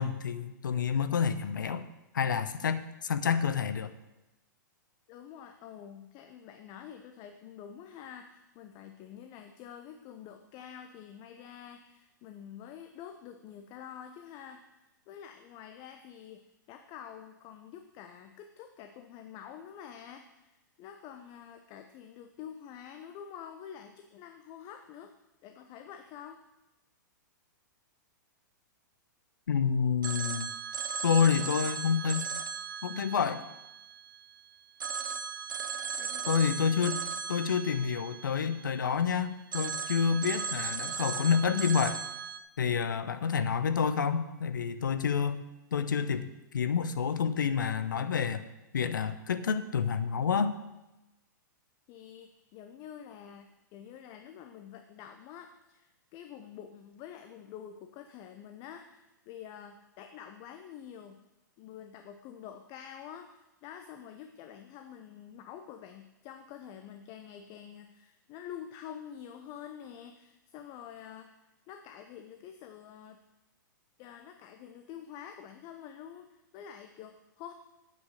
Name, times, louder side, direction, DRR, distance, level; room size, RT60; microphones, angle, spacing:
voice 1, 0.0-1.9 2.1-3.9 29.5-30.5 31.0-32.3 32.8-33.4 36.3-37.0 37.3-42.0 42.6-45.4 45.7-48.4 48.7-50.6, left 6 dB, 75° left, 12 dB, 0.8 m, -28 dB
voice 2, 5.1-14.6 15.1-16.4 16.7-25.1 25.4-26.4 36.0-37.2 51.9-61.2 61.6-73.2 74.0-77.5, left 9 dB, 35° left, 7 dB, 0.7 m, -47 dB
Telephone, 30.0-34.3 34.8-39.0 39.5-42.4, right 6 dB, 75° right, 0.8 m, -37 dB
8.6 x 8.0 x 6.4 m, 0.99 s
figure-of-eight pair, 110°, 11 cm